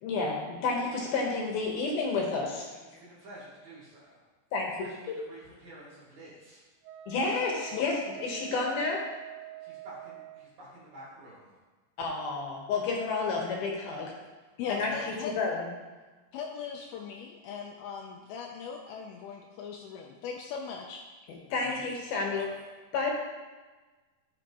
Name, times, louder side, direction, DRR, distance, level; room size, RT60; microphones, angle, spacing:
voice 1, 0.0-2.7 4.5-4.9 7.1-7.9 8.2-9.0 12.0-14.1 14.7-15.7 21.3-22.5 22.9-23.2, left 4 dB, 65° left, -1 dB, 2.7 m, -30 dB
voice 2, 2.8-4.2 4.8-6.6 9.6-11.6 15.0-15.1 21.4-21.6 22.4-22.5, right 1 dB, 55° right, -10 dB, 3.8 m, -50 dB
Wind instrument woodwind instrument, 6.8-10.5, right 16 dB, 85° right, 2.7 m, -46 dB
voice 3, 14.6-15.3 16.3-21.0, left 6 dB, 85° left, 0 dB, 2.2 m, -39 dB
14.0 x 6.2 x 3.0 m, 1.3 s
omnidirectional pair, 5.1 m